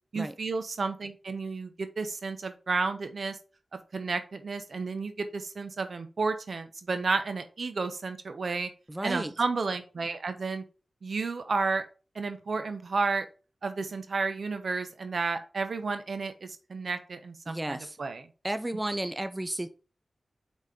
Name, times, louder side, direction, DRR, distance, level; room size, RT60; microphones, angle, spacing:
voice 1, 0.1-3.4 3.9-8.7 9.0-10.6 11.0-11.9 12.1-13.3 13.6-18.3, right 4 dB, 75° right, 9 dB, 0.9 m, -32 dB
voice 2, 8.9-9.3 17.5-18.0 18.4-19.7, right 1 dB, 20° right, 11 dB, 0.6 m, -33 dB
4.8 x 4.2 x 5.2 m, 0.34 s
cardioid pair, 55°, 0 cm